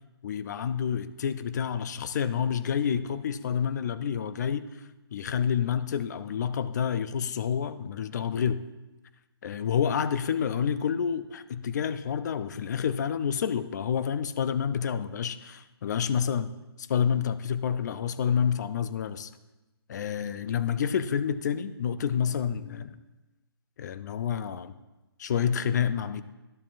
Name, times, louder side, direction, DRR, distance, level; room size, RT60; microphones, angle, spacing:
voice 1, 0.2-4.8 5.1-8.6 9.4-16.5 16.8-19.3 19.9-23.0 23.8-24.7 25.2-26.2, left 7 dB, 45° left, 13 dB, 0.4 m, -28 dB
12.0 x 7.2 x 2.5 m, 1.1 s
hypercardioid pair, 155°, 13 cm